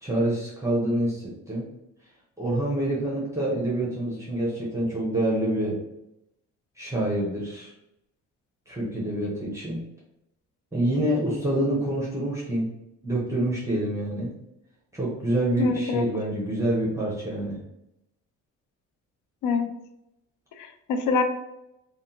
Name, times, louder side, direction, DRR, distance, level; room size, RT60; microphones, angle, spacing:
voice 1, 0.0-1.6 2.4-5.8 6.8-7.7 8.7-9.8 10.7-12.7 13.0-14.3 14.9-17.6, right 1 dB, 10° right, -6 dB, 1.0 m, -26 dB
voice 2, 15.6-16.0 19.4-19.7 20.6-21.2, left 4 dB, 85° left, 7 dB, 0.5 m, -25 dB
3.5 x 2.5 x 2.8 m, 0.86 s
cardioid pair, 90°, 30 cm